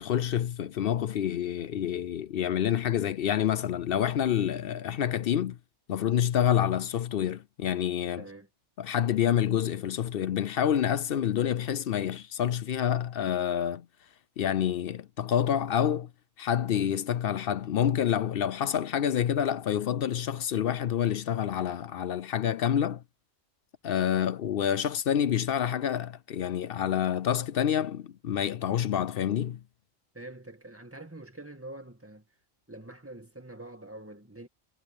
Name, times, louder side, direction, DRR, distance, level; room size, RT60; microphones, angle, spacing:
voice 1, 0.0-5.6 5.9-8.3 8.8-13.9 14.4-16.1 16.4-23.0 23.8-29.6, left 9 dB, 60° left, 0.7 m, -28 dB
voice 2, 8.2-8.5 30.1-32.2 32.7-34.5, right 2 dB, 10° right, 2.0 m, -45 dB
omnidirectional pair, 1.3 m